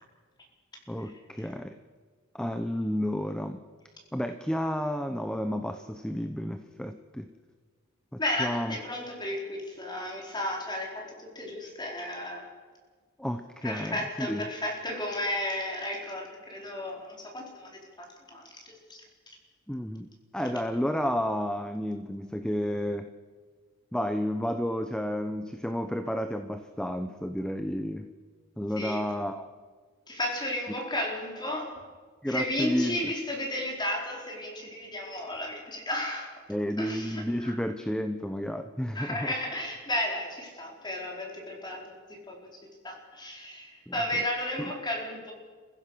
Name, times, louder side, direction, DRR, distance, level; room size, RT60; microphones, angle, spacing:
voice 1, 0.9-1.8 2.3-3.6 4.1-7.3 8.1-8.8 13.2-14.4 19.7-23.1 23.9-28.1 28.6-29.5 32.2-33.1 36.5-39.3 43.9-44.0, equal, 5° left, 7 dB, 0.8 m, -31 dB
voice 2, 8.2-10.9 11.2-12.5 13.6-19.0 28.8-29.0 30.1-31.8 32.3-36.3 36.8-37.5 38.9-41.8 42.1-42.4 42.8-45.3, left 1 dB, 20° left, 0 dB, 4.4 m, -33 dB
28.5 x 15.5 x 6.3 m, 1.5 s
head